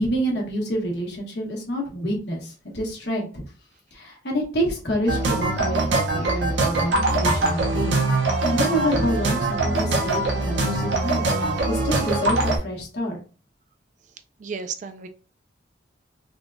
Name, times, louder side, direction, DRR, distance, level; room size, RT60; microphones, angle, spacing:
voice 1, 0.0-3.4 3.9-11.3 11.7-13.2, equal, 65° left, -1 dB, 1.1 m, -27 dB
sound 1, 5.1-12.6, right 2 dB, 85° right, 0.8 m, -23 dB
voice 2, 14.4-15.1, right 5 dB, 40° right, 9 dB, 0.3 m, -33 dB
3.5 x 2.3 x 2.5 m, 0.36 s
head